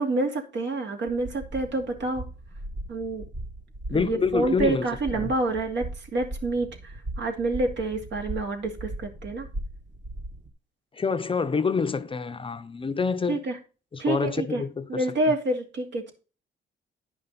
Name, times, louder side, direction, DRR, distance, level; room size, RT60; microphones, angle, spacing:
voice 1, 0.0-2.2 2.9-3.2 3.9-9.5 13.3-13.6 14.0-14.6 14.9-16.1, right 2 dB, 65° right, 2.4 m, -28 dB
sound 1, 1.1-10.5, right 1 dB, 40° right, 1.6 m, -38 dB
voice 2, 3.9-4.9 5.1-5.3 10.9-13.4 13.9-15.0, left 5 dB, 25° left, 0.6 m, -27 dB
10.0 x 5.5 x 4.0 m
cardioid pair, 90°, 20 cm